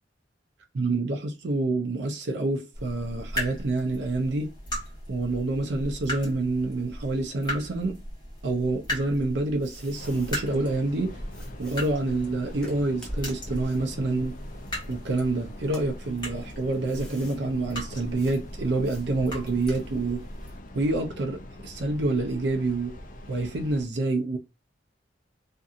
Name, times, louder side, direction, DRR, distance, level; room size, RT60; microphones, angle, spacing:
voice 1, 0.7-4.5 5.1-8.0 8.4-11.2 11.6-14.4 14.9-20.2 20.7-22.9 23.3-24.4, right 2 dB, 65° right, 0.5 m, -27 dB
sound 1, 2.7-20.6, equal, 20° left, 1.1 m, -38 dB
sound 2, 9.2-10.4 11.3-15.2 15.6-17.4 18.2-18.4 18.8-20.2, equal, 5° left, 0.6 m, -51 dB
Train, 9.9-23.9, left 1 dB, 45° left, 0.4 m, -44 dB
2.6 x 2.5 x 2.4 m
head